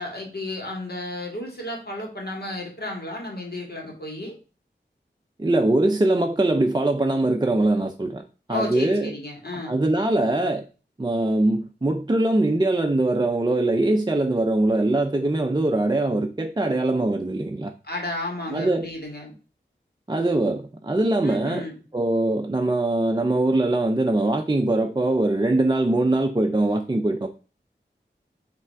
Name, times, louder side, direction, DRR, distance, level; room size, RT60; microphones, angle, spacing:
voice 1, 0.0-4.3 8.5-9.8 17.8-19.3 21.2-21.7, left 1 dB, 55° left, 2.2 m, -32 dB
voice 2, 5.4-8.2 8.5-9.1 9.5-10.6 11.0-17.7 18.5-18.9 20.1-21.7 21.9-27.3, right 2 dB, 20° right, 0.5 m, -22 dB
5.9 x 3.4 x 4.6 m
wide cardioid pair, 55°, 19 cm